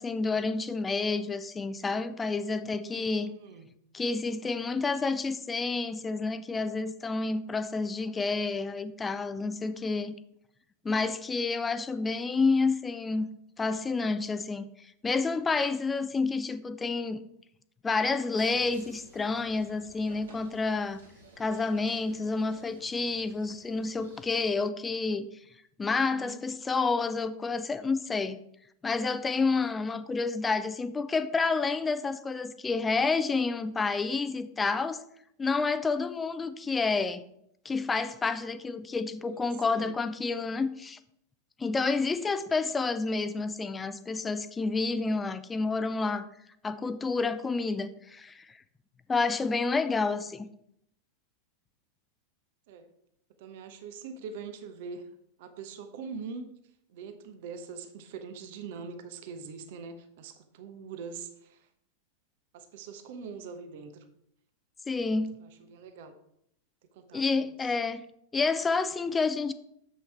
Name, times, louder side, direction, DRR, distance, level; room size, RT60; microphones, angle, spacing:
voice 1, 0.0-3.3 3.9-10.1 10.8-13.3 13.6-14.7 15.0-17.2 17.8-21.0 21.4-25.3 25.8-28.4 28.8-35.0 35.4-37.2 37.6-41.0 41.6-46.3 46.6-48.5 49.1-50.5 64.9-65.3 67.1-68.0 68.3-69.5, left 4 dB, 15° left, 0.6 m, -29 dB
voice 2, 2.6-3.7 26.0-26.4 39.2-40.0 52.7-52.9 53.4-55.1 55.4-56.5 56.9-61.7 62.5-64.0 65.4-66.1 66.9-67.7, right 5 dB, 50° right, 1.0 m, -43 dB
sound 1, 18.4-24.5, right 2 dB, 65° right, 2.0 m, -54 dB
10.0 x 7.8 x 3.4 m
figure-of-eight pair, 90°, 0 cm